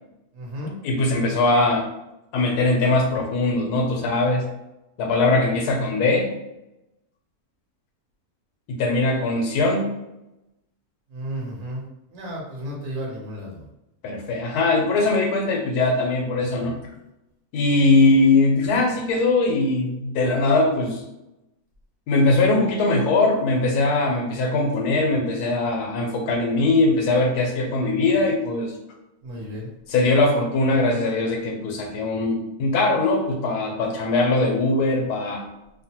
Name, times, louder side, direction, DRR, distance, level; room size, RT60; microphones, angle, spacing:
voice 1, 0.3-0.7 11.1-11.8 12.1-13.7 16.6-16.8 29.2-29.7, equal, 55° right, -3 dB, 1.0 m, -33 dB
voice 2, 0.8-1.9 2.3-4.4 5.0-6.3 8.7-9.9 14.0-16.8 17.5-21.0 22.1-28.7 29.9-35.5, left 2 dB, 90° left, 2 dB, 1.1 m, -21 dB
2.7 x 2.1 x 2.8 m, 0.91 s
omnidirectional pair, 1.6 m